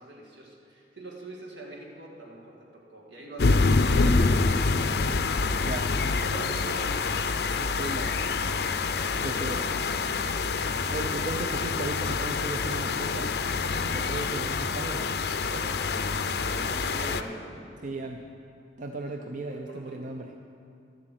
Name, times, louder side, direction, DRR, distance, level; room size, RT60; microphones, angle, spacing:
voice 1, 0.0-5.4 6.0-8.1 15.4-15.8 16.5-17.7 19.4-20.0, right 2 dB, 75° right, -1 dB, 2.2 m, -43 dB
sound 1, 3.4-17.2, left 4 dB, 60° left, 0.5 m, -26 dB
voice 2, 5.6-5.9 7.6-8.1 9.1-9.7 10.9-13.3 13.9-15.0 17.8-18.2 18.8-20.3, right 2 dB, 45° right, 4 dB, 0.5 m, -36 dB
11.5 x 7.8 x 7.7 m, 2.5 s
head